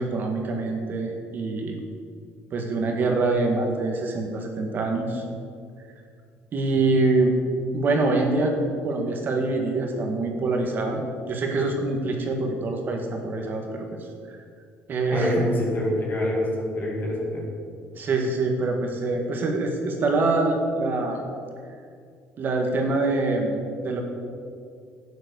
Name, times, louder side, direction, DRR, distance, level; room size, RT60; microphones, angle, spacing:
voice 1, 0.0-1.8 2.5-5.2 6.5-7.4 7.7-8.5 8.8-14.0 14.3-14.4 14.9-15.4 18.0-21.2 22.4-24.0, right 3 dB, 40° right, 3 dB, 1.8 m, -25 dB
voice 2, 15.1-17.5, left 1 dB, 40° left, -2 dB, 2.3 m, -26 dB
11.5 x 9.1 x 6.9 m, 2.3 s
cardioid pair, 135°, 5 cm